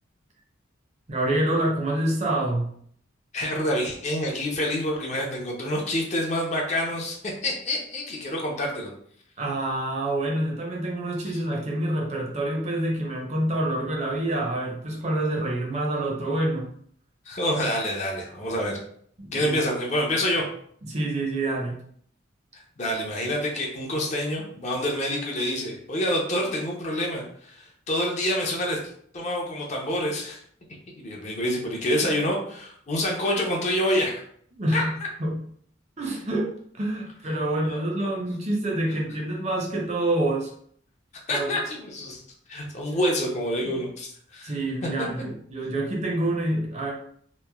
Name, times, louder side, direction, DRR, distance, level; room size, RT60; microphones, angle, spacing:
voice 1, 1.1-2.7 9.4-16.7 19.2-19.6 20.9-21.8 34.6-35.4 36.0-40.5 41.3-41.6 43.6-43.7 44.4-46.9, right 1 dB, 35° right, -1 dB, 0.5 m, -27 dB
voice 2, 3.3-7.2 7.4-8.9 11.3-11.4 17.3-18.8 19.3-20.4 22.8-28.8 29.1-30.4 31.0-34.2 34.7-34.8 37.6-38.1 41.1-42.2 42.5-44.6 44.8-44.9, left 1 dB, 35° left, -1 dB, 0.5 m, -27 dB
3.0 x 2.0 x 2.2 m, 0.62 s
head